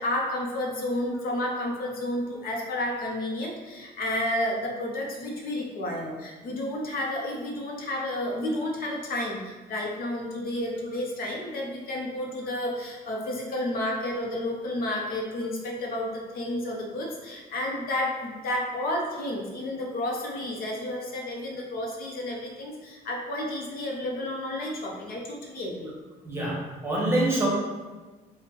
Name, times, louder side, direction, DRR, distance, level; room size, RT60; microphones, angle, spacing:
voice 1, 0.0-25.9, left 1 dB, 60° left, -1 dB, 0.9 m, -31 dB
voice 2, 26.2-26.6 26.8-27.5, right 1 dB, 15° right, -4 dB, 1.3 m, -25 dB
3.5 x 2.4 x 4.4 m, 1.3 s
cardioid pair, 110°, 17 cm